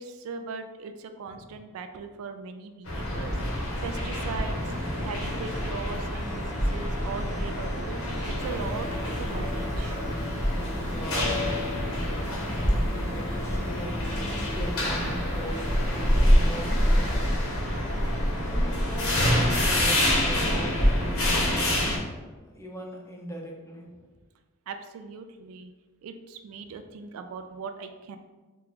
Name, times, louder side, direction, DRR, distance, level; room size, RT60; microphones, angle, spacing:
voice 1, 0.0-4.6 5.0-8.9 9.2-10.0 24.7-25.7 26.0-28.2, right 5 dB, 75° right, 8 dB, 0.3 m, -39 dB
sound 1, 2.9-22.0, equal, 70° left, 0.9 m, -26 dB
voice 2, 4.0-5.1 10.8-13.9 14.5-17.5 18.5-21.6 22.4-24.1, equal, 15° left, -1 dB, 0.4 m, -41 dB
sound 2, 8.4-17.1, left 3 dB, 40° right, 0.8 m, -40 dB
3.0 x 2.3 x 3.7 m, 1.3 s
head